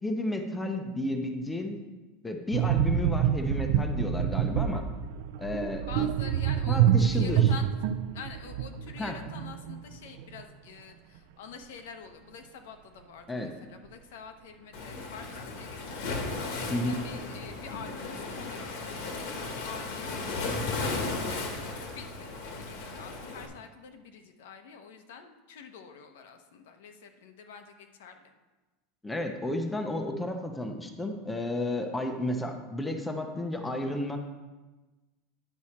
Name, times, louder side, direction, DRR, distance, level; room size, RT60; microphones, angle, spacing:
voice 1, 0.0-1.8 2.2-4.8 5.4-6.1 6.7-7.5 9.0-9.2 13.3-13.5 16.7-17.0 29.0-34.2, left 1 dB, 5° left, 4 dB, 0.6 m, -32 dB
sound 1, 2.5-9.9 10.2-10.4, right 9 dB, 60° right, 0.4 m, -27 dB
voice 2, 5.8-7.7 8.1-28.3, left 6 dB, 80° left, 6 dB, 0.9 m, -47 dB
Waves surf, 14.7-23.5, left 3 dB, 55° left, 1.3 m, -35 dB
9.5 x 6.1 x 4.3 m, 1.2 s
supercardioid pair, 175°, 0 cm